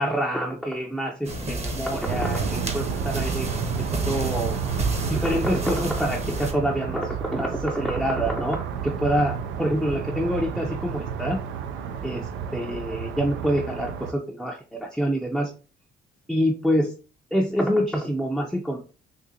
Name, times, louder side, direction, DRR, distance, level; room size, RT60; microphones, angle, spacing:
voice 1, 0.0-3.5 4.1-4.5 5.1-8.6 8.8-11.4 12.0-12.2 12.5-15.5 16.3-16.9 17.3-18.8, equal, ahead, -1 dB, 0.5 m, -26 dB
sound 1, 1.2-6.5, right 2 dB, 30° right, 0.9 m, -31 dB
sound 2, 2.1-14.1, right 7 dB, 80° right, 0.4 m, -31 dB
3.8 x 2.6 x 2.7 m, 0.35 s
cardioid pair, 90°, 20 cm